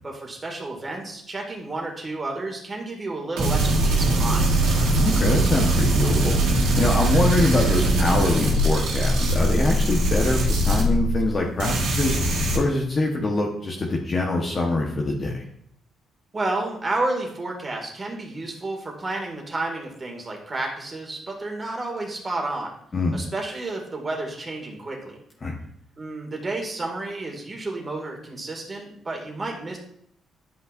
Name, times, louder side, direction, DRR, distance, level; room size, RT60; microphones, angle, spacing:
voice 1, 0.0-4.5 7.0-7.5 16.3-22.7 23.1-25.2 26.0-29.8, right 2 dB, 30° right, 0 dB, 2.1 m, -31 dB
sound 1, 3.4-11.3 11.6-12.6, right 1 dB, 90° right, 2.3 m, -21 dB
voice 2, 4.9-6.4 6.8-15.4 22.9-23.2 25.4-25.6, left 2 dB, 35° left, -1 dB, 1.1 m, -24 dB
10.5 x 5.7 x 2.6 m, 0.68 s
cardioid pair, 90°, 0 cm